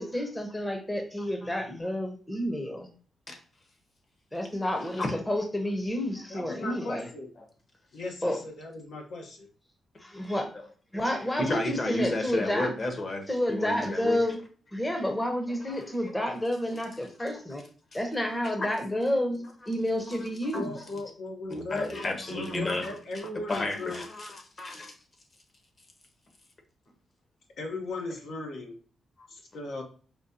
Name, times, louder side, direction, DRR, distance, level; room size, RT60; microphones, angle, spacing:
voice 1, 0.0-2.9 4.3-7.1 8.2-8.4 10.0-10.4 10.9-12.7 13.3-14.4 14.7-17.6 17.9-20.7, left 1 dB, 15° left, 4 dB, 0.7 m, -30 dB
voice 2, 4.8-5.2 11.4-14.2 15.7-15.9 17.2-17.3 17.9-18.0 18.6-18.7 20.5-20.6 21.5-22.9 23.5-24.9, left 2 dB, 40° left, 4 dB, 1.0 m, -32 dB
voice 3, 6.3-7.3 7.9-9.5 20.5-24.0 27.6-28.7 29.3-29.8, left 2 dB, 80° left, 1 dB, 0.9 m, -38 dB
5.1 x 2.3 x 2.7 m, 0.41 s
cardioid pair, 85°, 0 cm